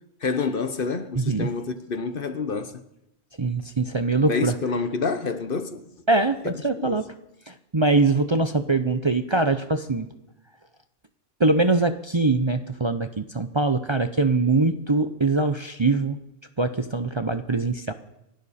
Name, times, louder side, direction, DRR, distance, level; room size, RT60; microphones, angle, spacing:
voice 1, 0.2-2.7 4.3-5.9 6.4-7.0, left 4 dB, 55° left, 1.2 m, -28 dB
voice 2, 1.2-1.5 3.4-4.5 6.1-7.0 7.5-10.1 11.4-16.2 16.6-17.9, right 3 dB, 30° right, 0.7 m, -23 dB
28.5 x 11.5 x 4.3 m
omnidirectional pair, 1.1 m